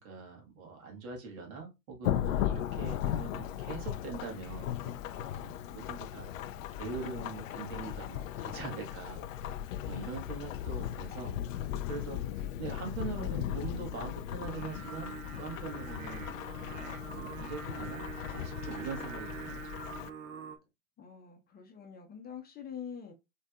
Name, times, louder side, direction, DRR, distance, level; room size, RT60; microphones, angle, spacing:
voice 1, 0.0-6.3 6.8-9.4 9.8-19.6, right 4 dB, 55° right, 2.0 m, -43 dB
Thunderstorm / Rain, 2.0-20.1, left 11 dB, 55° left, 0.5 m, -37 dB
Singing, 14.4-20.6, right 5 dB, 35° right, 0.8 m, -44 dB
voice 2, 21.0-23.1, left 7 dB, 20° left, 0.8 m, -45 dB
5.2 x 3.2 x 2.5 m
hypercardioid pair, 105°, 48 cm